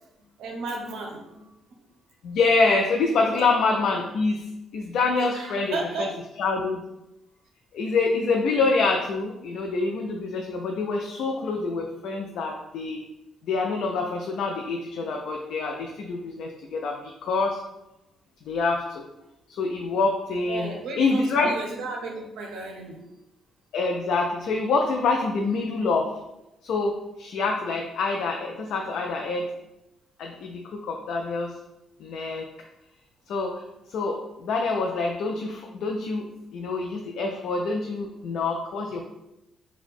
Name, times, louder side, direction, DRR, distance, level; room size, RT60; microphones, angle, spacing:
voice 1, 0.4-1.5 3.3-3.5 5.1-6.1 10.4-10.5 19.9-20.0 20.5-23.0, right 3 dB, 80° right, 2 dB, 0.5 m, -34 dB
voice 2, 2.2-4.5 4.7-5.7 6.4-6.8 7.7-13.0 13.4-17.6 18.5-19.0 19.6-21.5 23.7-26.1 26.6-29.5 30.2-31.5 32.0-32.5 33.3-33.6 33.9-36.3 36.5-39.1, left 3 dB, 75° left, 1 dB, 0.3 m, -26 dB
2.6 x 2.1 x 4.0 m, 0.94 s
cardioid pair, 90°, 0 cm